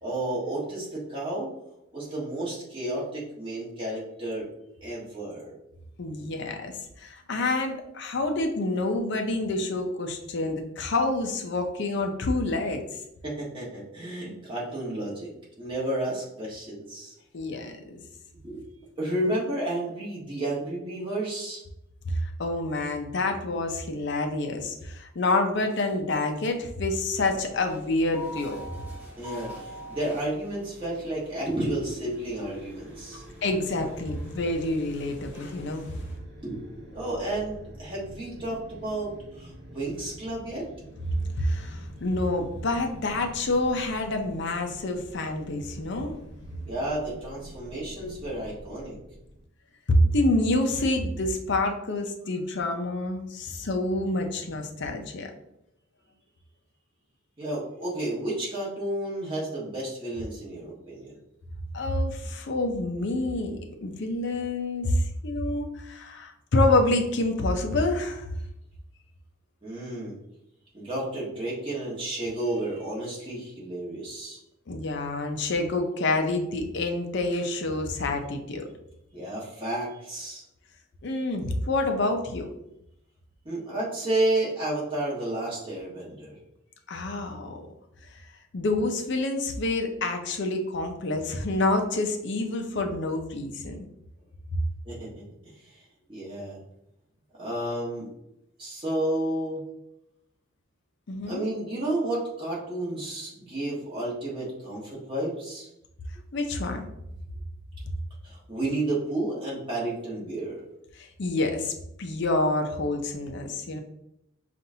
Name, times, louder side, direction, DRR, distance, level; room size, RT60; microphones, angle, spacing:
voice 1, 0.0-1.5 1.9-4.5 4.8-5.5 13.2-17.1 18.3-21.6 29.2-33.4 36.4-40.7 46.7-49.0 57.4-61.2 69.6-70.2 70.7-74.4 79.1-80.4 83.4-86.4 94.8-95.2 95.6-95.8 96.1-96.6 97.4-98.1 98.6-99.6 101.3-105.7 108.2-110.6, right 1 dB, 25° right, -6 dB, 1.3 m, -31 dB
voice 2, 6.0-12.8 17.3-18.0 22.0-28.6 33.1-35.8 41.4-46.2 49.9-55.3 61.7-68.3 74.7-78.7 81.0-82.5 86.9-87.6 88.5-93.9 94.5-94.6 101.1-101.5 106.3-106.9 111.0-111.7 112.0-113.8, left 2 dB, 55° left, 4 dB, 0.5 m, -27 dB
sound 1, 27.1-36.2, left 1 dB, 10° right, 0.7 m, -46 dB
sound 2, 32.0-49.4, equal, 55° right, 1.0 m, -47 dB
5.4 x 2.5 x 2.7 m, 0.82 s
head